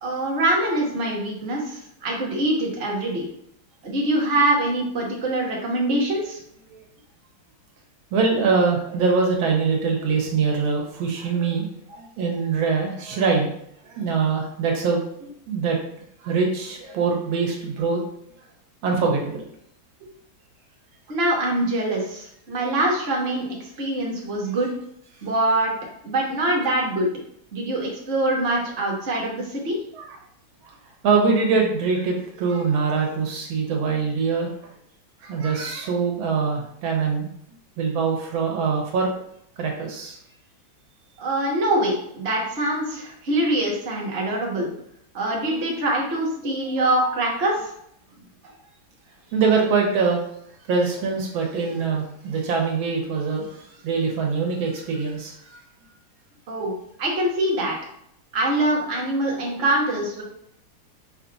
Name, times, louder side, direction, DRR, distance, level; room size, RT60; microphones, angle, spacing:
voice 1, 0.0-3.2 3.8-6.4 21.1-23.5 23.8-24.7 25.2-25.7 26.0-27.1 27.5-29.8 41.2-44.7 45.1-47.5 56.5-56.7 57.0-57.7 58.3-60.2, right 1 dB, 40° right, -2 dB, 1.0 m, -24 dB
voice 2, 8.1-13.5 13.8-15.8 16.2-18.0 18.8-19.4 29.9-30.2 30.6-30.7 31.0-34.5 35.2-37.3 37.8-39.1 39.6-40.2 46.4-46.7 47.0-47.1 49.3-50.2 50.7-55.6, right 5 dB, 80° right, 1 dB, 1.7 m, -23 dB
5.5 x 2.4 x 3.9 m, 0.71 s
omnidirectional pair, 2.2 m